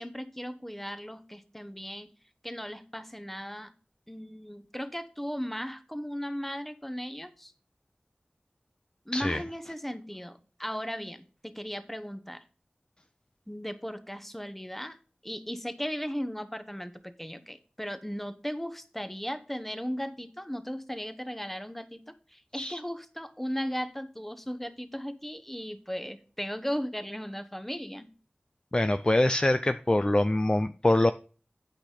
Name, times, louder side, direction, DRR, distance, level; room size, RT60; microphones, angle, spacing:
voice 1, 0.0-2.1 2.4-3.7 4.1-7.5 9.1-12.4 13.5-15.0 15.2-22.0 22.3-28.1, equal, 5° left, 11 dB, 1.0 m, -36 dB
voice 2, 9.1-9.4 22.6-22.8 28.7-31.1, left 1 dB, 25° left, 11 dB, 0.4 m, -24 dB
8.9 x 5.8 x 5.0 m, 0.38 s
wide cardioid pair, 45°, 3 cm